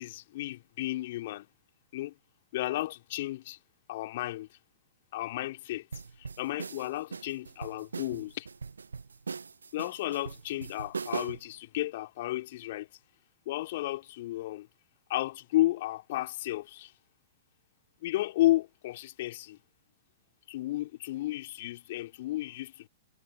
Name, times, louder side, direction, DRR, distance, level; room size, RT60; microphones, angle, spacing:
voice 1, 0.0-1.5 1.9-2.1 2.5-3.6 3.9-4.5 5.1-5.9 6.2-8.5 9.7-12.9 13.5-14.7 15.1-16.9 18.0-19.6 20.5-22.9, left 16 dB, 50° left, 2.5 m, -32 dB
sound 1, 5.9-11.5, right 5 dB, 75° right, 0.9 m, -40 dB
figure-of-eight pair, 110°, 0 cm